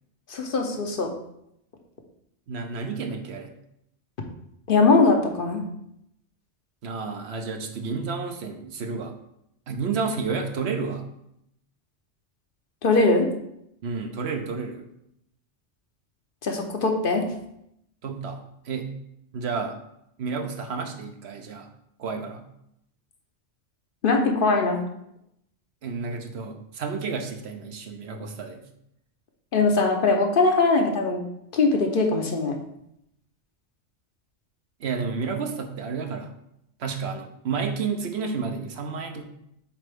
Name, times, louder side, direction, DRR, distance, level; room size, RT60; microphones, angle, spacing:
voice 1, 0.3-1.1 4.7-5.6 12.8-13.3 16.4-17.2 24.0-24.8 29.5-31.2 31.5-32.6, left 3 dB, 55° left, 3 dB, 0.9 m, -21 dB
voice 2, 2.5-3.5 6.8-9.1 9.7-11.0 13.8-14.9 18.0-18.9 19.3-19.8 20.2-21.7 22.0-22.5 25.8-28.6 34.8-36.3 36.8-39.2, right 5 dB, 70° right, 5 dB, 1.0 m, -31 dB
7.4 x 4.2 x 3.5 m, 0.78 s
omnidirectional pair, 1.2 m